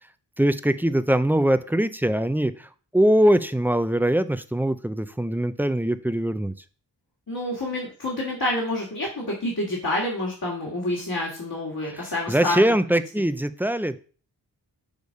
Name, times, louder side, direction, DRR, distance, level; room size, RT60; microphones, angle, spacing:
voice 1, 0.4-6.5 12.3-14.0, right 1 dB, 5° right, 12 dB, 0.5 m, -22 dB
voice 2, 7.3-12.6 12.9-13.0, left 1 dB, 55° left, -5 dB, 2.3 m, -28 dB
6.6 x 3.5 x 5.3 m, 0.39 s
cardioid pair, 40°, 41 cm